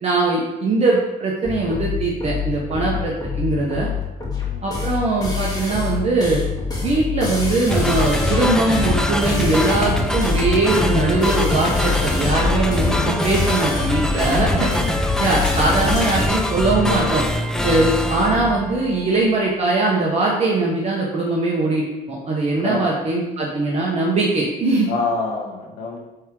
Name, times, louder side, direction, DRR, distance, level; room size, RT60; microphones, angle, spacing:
voice 1, 0.0-3.9 4.6-6.4 6.8-14.7 15.2-17.2 17.6-24.9, right 2 dB, 40° right, -3 dB, 1.3 m, -21 dB
sound 1, 1.4-16.3, left 6 dB, 20° left, 1.8 m, -26 dB
voice 2, 4.4-4.7 14.7-14.9 17.5-17.9 22.5-22.8 24.9-26.0, left 3 dB, 70° left, 0 dB, 1.8 m, -28 dB
sound 2, 7.7-19.3, left 1 dB, 5° left, 0.6 m, -23 dB
8.2 x 3.7 x 4.8 m, 1.0 s
cardioid pair, 110°, 17 cm